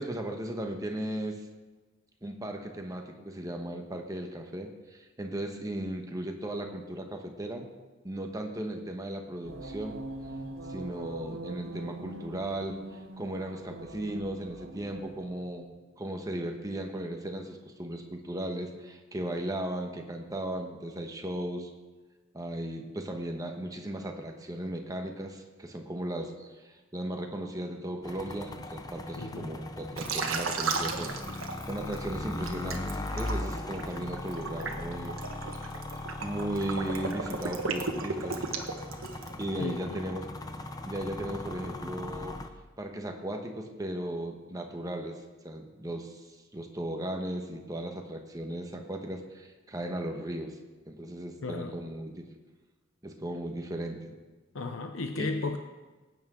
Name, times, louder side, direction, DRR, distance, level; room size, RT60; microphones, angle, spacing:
voice 1, 0.0-1.4 2.2-7.7 8.0-10.0 10.7-21.7 22.3-31.1 31.7-35.2 36.2-38.5 39.4-40.2 40.8-42.4 42.8-50.6 50.9-52.2 53.0-54.2 55.2-55.3, right 1 dB, 15° right, 3 dB, 1.1 m, -36 dB
sound 1, 9.4-15.6, right 2 dB, 70° right, 1.5 m, -43 dB
sound 2, 28.0-42.5, left 1 dB, 20° left, 0.6 m, -39 dB
voice 2, 29.2-29.5 39.6-40.0 51.4-51.7 54.5-55.6, left 3 dB, 75° left, 6 dB, 0.7 m, -34 dB
Liquid, 30.0-32.0 32.4-39.4, right 4 dB, 90° right, 1.4 m, -34 dB
19.0 x 9.1 x 3.8 m, 1.2 s
head